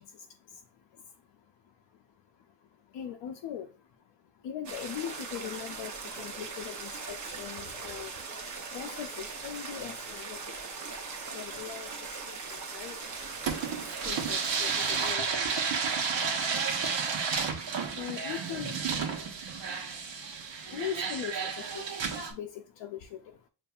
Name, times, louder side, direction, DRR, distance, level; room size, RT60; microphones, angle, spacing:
voice 1, 0.0-10.6 11.1-16.3 16.6-23.5, left 9 dB, 80° left, 0.5 m, -43 dB
sound 1, 4.6-15.1, right 4 dB, 40° right, 0.7 m, -40 dB
sound 2, 13.0-22.3, right 5 dB, 85° right, 1.0 m, -32 dB
6.9 x 2.6 x 2.3 m
wide cardioid pair, 180°, 43 cm